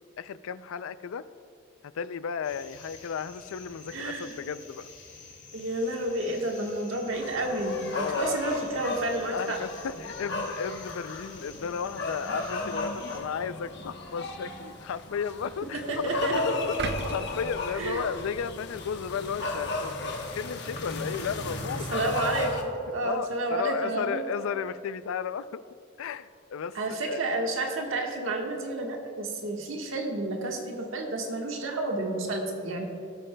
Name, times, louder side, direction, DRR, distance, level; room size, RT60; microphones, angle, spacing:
voice 1, 0.2-1.3 1.8-4.9 7.9-8.4 9.3-16.6 17.1-22.1 23.0-25.6 26.0-27.2, left 6 dB, 80° left, 15 dB, 0.4 m, -34 dB
sound 1, 2.4-13.2, left 4 dB, 35° left, 1.7 m, -49 dB
voice 2, 3.9-4.3 5.5-9.6 15.7-16.6 17.8-18.0 21.9-24.2 26.7-32.9, right 2 dB, 75° right, 1 dB, 1.4 m, -30 dB
sound 2, 7.1-22.6, left 2 dB, 55° left, 1.0 m, -35 dB
sound 3, 16.8-19.0 19.4-19.6, right 4 dB, 50° right, 0.4 m, -37 dB
18.0 x 8.4 x 2.2 m, 2.4 s
head